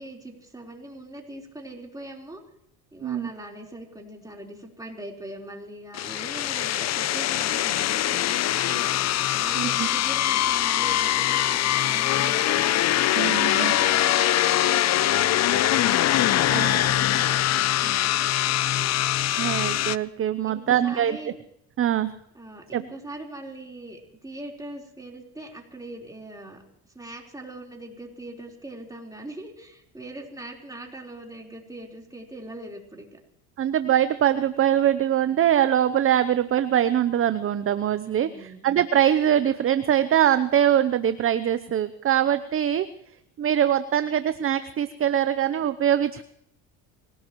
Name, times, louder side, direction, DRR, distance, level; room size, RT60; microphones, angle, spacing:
voice 1, 0.0-2.4 2.9-8.9 9.3-12.8 13.4-15.8 16.2-18.3 18.7-19.1 20.4-21.4 22.3-26.6 26.9-33.2 38.0-38.7, right 1 dB, 10° right, 0 dB, 4.1 m, -41 dB
sound 1, 5.9-20.0, left 13 dB, 40° left, 0.6 m, -23 dB
voice 2, 9.5-9.9 13.1-13.7 16.5-16.9 19.4-21.2 21.8-22.1 22.7-22.8 33.6-42.9 43.4-46.2, right 10 dB, 35° right, 12 dB, 0.7 m, -23 dB
25.0 x 17.5 x 3.1 m, 0.75 s
supercardioid pair, 105°, 40 cm